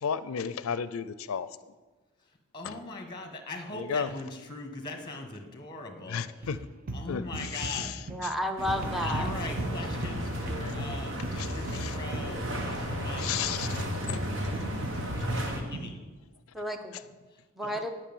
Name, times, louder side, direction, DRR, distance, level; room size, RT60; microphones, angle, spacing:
voice 1, 0.0-1.5 2.7-2.8 3.7-4.1 6.1-6.6 7.1-7.9 11.4-12.0 13.2-13.8, left 7 dB, 85° left, 15 dB, 0.4 m, -33 dB
voice 2, 2.5-6.6 6.9-7.9 9.0-13.5 15.3-16.0, left 2 dB, 20° left, 5 dB, 1.3 m, -40 dB
sound 1, 6.4-16.0, right 2 dB, 40° right, 0.7 m, -39 dB
voice 3, 8.1-9.3 16.5-17.0 17.6-17.9, equal, ahead, 4 dB, 0.8 m, -32 dB
sound 2, 8.6-15.6, equal, 65° right, 1.5 m, -34 dB
10.0 x 5.7 x 7.1 m, 1.3 s
head